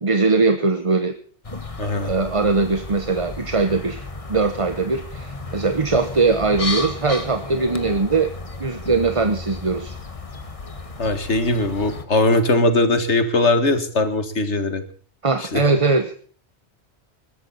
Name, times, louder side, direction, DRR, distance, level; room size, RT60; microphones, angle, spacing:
voice 1, 0.0-1.1 1.8-4.0 4.3-8.3 8.6-10.0 15.2-16.1, right 3 dB, 30° right, 9 dB, 1.0 m, -21 dB
sound 1, 1.4-12.1, left 2 dB, 30° left, 1.5 m, -33 dB
voice 2, 1.8-2.1 11.0-14.8 15.4-15.6, left 2 dB, 85° left, 9 dB, 2.1 m, -20 dB
21.0 x 13.5 x 4.1 m, 0.43 s
omnidirectional pair, 1.1 m